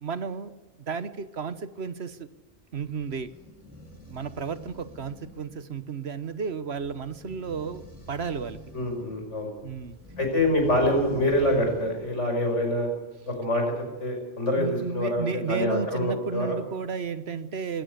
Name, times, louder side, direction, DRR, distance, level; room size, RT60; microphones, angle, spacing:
voice 1, 0.0-0.5 0.9-2.3 2.7-3.3 4.1-8.6 9.6-10.0 14.6-17.8, right 5 dB, 60° right, 14 dB, 1.3 m, -33 dB
sound 1, 2.5-12.2, left 1 dB, 10° right, 7.2 m, -47 dB
voice 2, 8.7-9.5 10.2-12.9 13.3-13.7 14.0-16.6, left 1 dB, 70° left, 4 dB, 5.8 m, -25 dB
21.0 x 17.0 x 8.1 m, 1.2 s
omnidirectional pair, 1.3 m